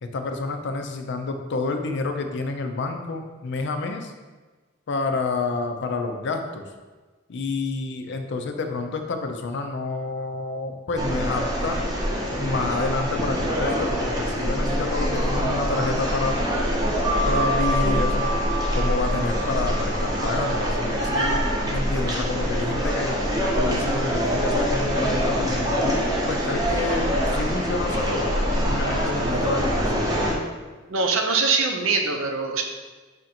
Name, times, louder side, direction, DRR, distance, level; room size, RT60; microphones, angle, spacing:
voice 1, 0.0-4.1 4.9-6.7 7.3-11.8 12.4-16.4 17.2-18.2 18.7-23.2 23.5-28.3 28.6-30.1, left 3 dB, 60° left, 5 dB, 0.5 m, -29 dB
sound 1, 11.0-30.3, equal, 20° right, 0.7 m, -24 dB
sound 2, 17.0-22.2, equal, ahead, 1.1 m, -31 dB
voice 2, 30.9-32.6, right 4 dB, 80° right, 4 dB, 0.6 m, -23 dB
5.0 x 2.5 x 4.2 m, 1.3 s
head